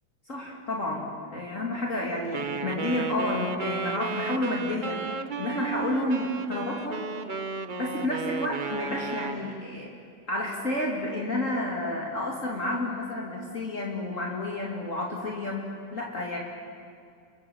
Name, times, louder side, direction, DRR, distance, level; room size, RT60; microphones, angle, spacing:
voice 1, 0.3-5.0 5.4-7.1 7.7-9.9 10.3-16.4, left 1 dB, 45° left, -2 dB, 2.9 m, -30 dB
Wind instrument woodwind instrument, 2.3-9.4, right 5 dB, 35° right, 0.8 m, -33 dB
29.0 x 23.5 x 7.2 m, 2.3 s
omnidirectional pair, 1.9 m